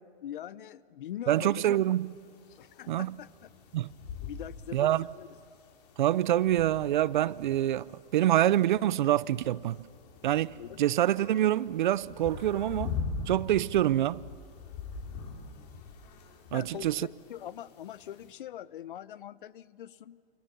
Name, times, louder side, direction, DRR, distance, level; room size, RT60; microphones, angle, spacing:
voice 1, 0.2-2.0 2.6-3.5 4.2-5.4 10.5-10.9 16.5-20.2, left 11 dB, 60° left, 0.8 m, -43 dB
sound 1, 1.3-18.3, left 5 dB, 40° left, 3.6 m, -44 dB
voice 2, 1.3-2.1 2.9-3.1 3.7-3.9 4.7-5.1 6.0-9.8 10.2-13.0 13.3-14.2 16.5-17.0, right 12 dB, 55° right, 0.6 m, -26 dB
29.0 x 27.0 x 7.0 m
hypercardioid pair, 160°, 29 cm